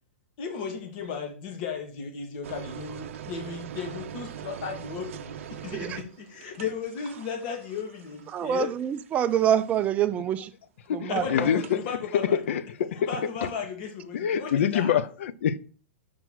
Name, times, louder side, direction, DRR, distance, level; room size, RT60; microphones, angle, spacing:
voice 1, 0.4-8.7 11.1-12.4 13.0-15.0, left 6 dB, 45° left, 1.7 m, -35 dB
sound 1, 2.4-10.1 11.4-11.8, right 9 dB, 70° right, 0.6 m, -42 dB
voice 2, 8.3-10.5 10.9-11.6, right 9 dB, 20° right, 0.4 m, -26 dB
voice 3, 10.9-11.8 12.3-13.1 14.1-15.6, left 8 dB, 70° left, 0.6 m, -25 dB
6.1 x 4.6 x 6.1 m
hypercardioid pair, 155°, 7 cm